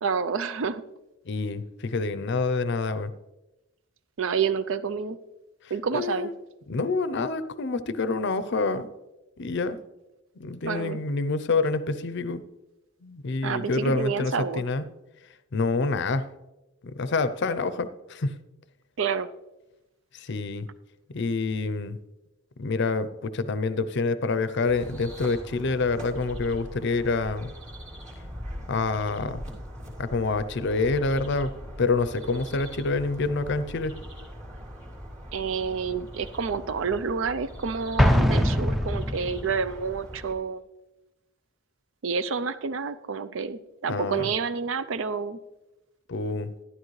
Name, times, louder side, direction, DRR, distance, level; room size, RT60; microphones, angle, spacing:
voice 1, 0.0-0.8 4.2-5.2 5.7-6.3 10.7-11.0 13.4-14.6 19.0-19.3 35.3-40.6 42.0-45.4, right 5 dB, 65° right, 14 dB, 0.5 m, -29 dB
voice 2, 1.3-3.1 5.9-6.3 6.7-8.9 9.4-9.8 10.4-12.4 13.0-14.8 15.5-16.2 16.8-18.3 20.1-20.7 21.1-22.0 22.6-27.5 28.7-29.4 30.0-31.5 31.8-34.0 43.9-44.3 46.1-46.5, left 3 dB, 55° left, 13 dB, 0.6 m, -27 dB
sound 1, 24.7-40.3, equal, 35° right, 2.1 m, -41 dB
Explosion, 38.0-39.6, equal, ahead, 0.4 m, -22 dB
12.0 x 11.0 x 3.2 m, 1.0 s
head